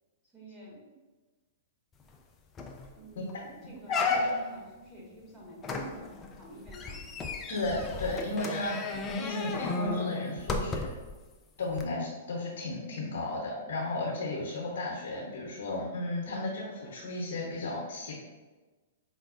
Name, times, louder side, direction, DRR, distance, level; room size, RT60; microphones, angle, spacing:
voice 1, 0.3-0.9 3.0-7.1 16.2-16.5, right 2 dB, ahead, -7 dB, 1.4 m, -48 dB
sound 1, 2.1-2.2 2.6-2.9 3.3-3.4 3.9-4.6 5.6-11.1 11.7-11.8, left 3 dB, 20° left, 0.3 m, -33 dB
voice 2, 4.0-4.3 7.5-10.9 11.6-18.2, left 2 dB, 70° left, -3 dB, 0.8 m, -34 dB
4.9 x 2.2 x 2.4 m, 1.2 s
hypercardioid pair, 125°, 0 cm